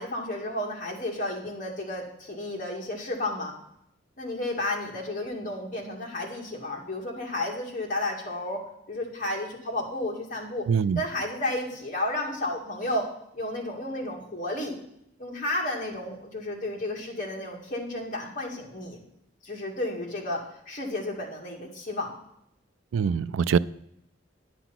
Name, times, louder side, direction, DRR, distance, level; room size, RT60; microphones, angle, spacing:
voice 1, 0.0-3.5 4.2-10.7 11.0-13.1 13.3-14.8 15.2-19.0 19.4-22.1, left 1 dB, 45° left, 2.1 m, -32 dB
voice 2, 10.7-11.0 22.9-23.6, right 6 dB, 90° right, 0.4 m, -23 dB
10.5 x 6.9 x 5.9 m
head